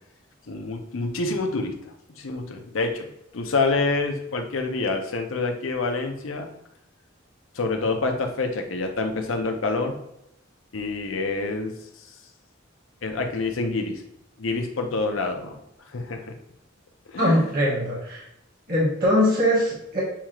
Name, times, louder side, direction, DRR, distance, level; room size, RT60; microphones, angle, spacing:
voice 1, 0.5-1.7 2.2-3.1 3.3-6.5 7.5-10.0 10.7-11.8 13.0-14.0 14.4-15.6 15.9-16.4 17.1-17.5, left 3 dB, 85° left, 4 dB, 0.7 m, -27 dB
voice 2, 17.2-18.2 18.7-20.0, equal, 50° right, -5 dB, 1.4 m, -21 dB
7.1 x 2.4 x 3.0 m, 0.82 s
head